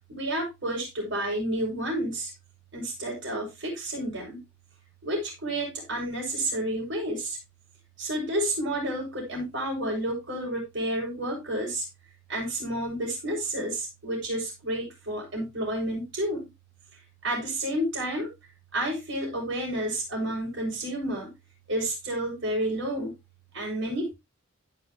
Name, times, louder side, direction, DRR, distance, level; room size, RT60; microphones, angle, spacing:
voice 1, 0.1-2.3 2.7-4.4 5.0-7.4 8.0-11.8 12.3-16.5 17.2-18.3 18.7-21.3 21.7-23.1 23.5-24.1, right 1 dB, 60° right, -2 dB, 7.6 m, -30 dB
16.0 x 6.2 x 3.1 m, 0.23 s
head